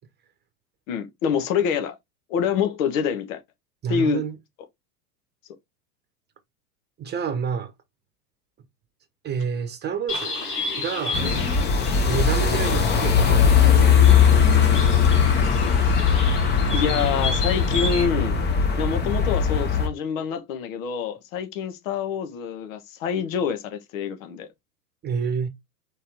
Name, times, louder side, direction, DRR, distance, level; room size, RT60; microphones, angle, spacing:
voice 1, 0.9-1.9 2.3-3.4 3.9-4.2 11.2-11.9 16.7-18.4 18.8-24.5, left 7 dB, 55° left, 1.2 m, -26 dB
voice 2, 3.8-4.4 7.0-7.7 9.2-10.4 10.8-11.3 12.1-14.5 25.0-25.5, right 6 dB, 20° right, 1.0 m, -29 dB
Bird, 10.1-18.0, left 3 dB, 75° left, 2.1 m, -32 dB
sound 1, 11.1-19.9, left 6 dB, 20° left, 1.0 m, -19 dB
4.5 x 3.2 x 3.4 m
figure-of-eight pair, 90°, 47 cm